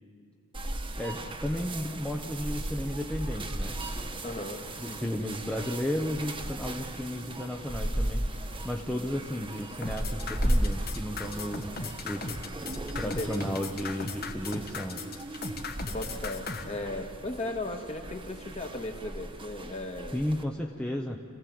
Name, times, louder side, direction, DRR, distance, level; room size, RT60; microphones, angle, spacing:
sound 1, 0.5-20.4, right 1 dB, 25° right, 1.2 m, -36 dB
voice 1, 1.0-3.8 4.4-4.5 4.8-12.4 12.9-15.0 20.1-21.2, left 1 dB, 5° left, 1 dB, 0.8 m, -34 dB
voice 2, 4.2-5.0 8.9-9.1 13.1-13.6 15.9-20.2, left 2 dB, 30° left, 3 dB, 1.7 m, -37 dB
sound 2, 9.8-16.6, left 4 dB, 45° left, 1.4 m, -37 dB
27.0 x 16.5 x 7.7 m, 2.3 s
head